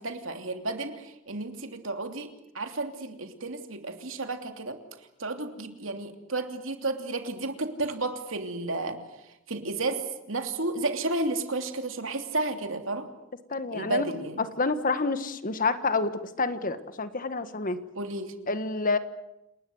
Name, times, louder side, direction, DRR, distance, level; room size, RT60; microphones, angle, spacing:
voice 1, 0.0-4.8 5.2-13.1 13.7-14.4 17.9-18.3, right 2 dB, 75° right, 6 dB, 3.0 m, -32 dB
voice 2, 13.5-14.1 14.6-17.8 18.5-19.0, left 3 dB, 45° left, 11 dB, 1.6 m, -28 dB
28.5 x 20.0 x 8.0 m, 0.89 s
head